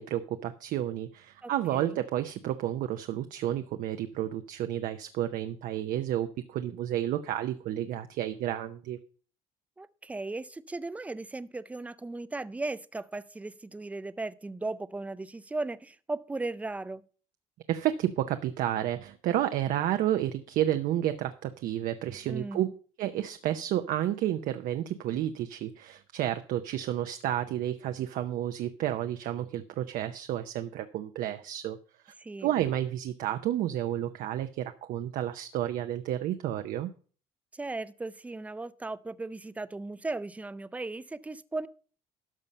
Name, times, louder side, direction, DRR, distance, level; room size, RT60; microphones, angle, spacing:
voice 1, 0.0-9.0 17.7-22.7 23.0-31.8 32.1-32.2 32.4-36.9, right 12 dB, 70° right, 8 dB, 0.7 m, -31 dB
voice 2, 1.4-2.0 9.8-17.0 22.3-22.7 32.2-32.5 37.5-41.7, right 2 dB, 10° right, 16 dB, 0.5 m, -37 dB
12.5 x 5.5 x 5.4 m, 0.42 s
cardioid pair, 120°, 14 cm